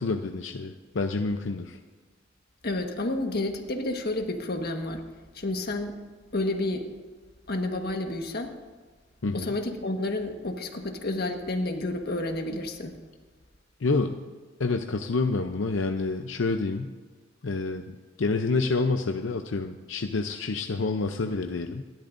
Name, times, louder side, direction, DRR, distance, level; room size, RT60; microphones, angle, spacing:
voice 1, 0.0-1.8 9.2-9.5 13.8-14.2 14.6-16.9 17.4-21.8, left 3 dB, 85° left, 5 dB, 0.6 m, -28 dB
voice 2, 2.6-5.0 5.3-6.0 6.3-6.9 7.5-8.5 9.3-13.0, left 2 dB, 55° left, 4 dB, 1.5 m, -30 dB
27.0 x 12.0 x 2.6 m, 1.4 s
head